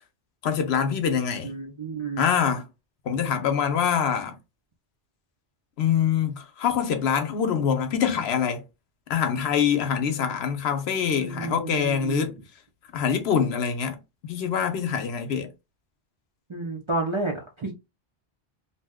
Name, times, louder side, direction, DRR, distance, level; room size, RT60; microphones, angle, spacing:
voice 1, 0.4-1.5 2.2-2.7 3.1-4.4 5.8-8.6 9.1-12.4 12.9-14.0 14.3-15.5, left 7 dB, 70° left, 0.8 m, -24 dB
voice 2, 1.4-2.2 11.2-12.2 16.5-17.7, right 3 dB, 40° right, 0.4 m, -31 dB
2.7 x 2.1 x 3.4 m
omnidirectional pair, 1.1 m